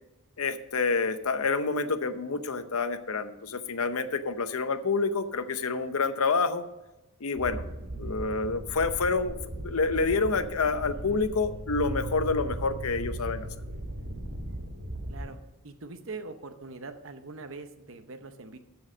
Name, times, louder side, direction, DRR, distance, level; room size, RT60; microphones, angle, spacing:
voice 1, 0.4-6.6 7.2-7.6 8.0-13.5, left 4 dB, 80° left, 11 dB, 0.8 m, -28 dB
sound 1, 7.4-15.3, equal, 80° right, 2.1 m, -37 dB
voice 2, 15.6-18.6, right 3 dB, 60° right, 9 dB, 0.8 m, -42 dB
13.5 x 4.7 x 6.3 m, 1.0 s
head